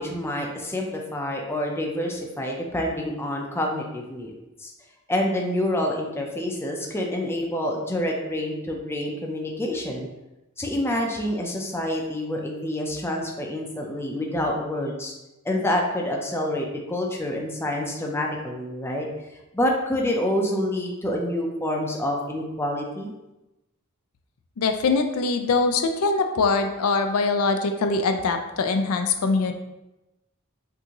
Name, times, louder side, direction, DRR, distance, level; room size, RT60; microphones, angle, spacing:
voice 1, 0.0-4.3 4.6-4.7 5.1-10.1 10.6-15.1 15.4-19.1 19.5-23.1, left 1 dB, 10° left, 0 dB, 0.5 m, -27 dB
voice 2, 24.6-29.5, left 4 dB, 70° left, 6 dB, 0.4 m, -23 dB
6.0 x 2.7 x 2.9 m, 0.98 s
head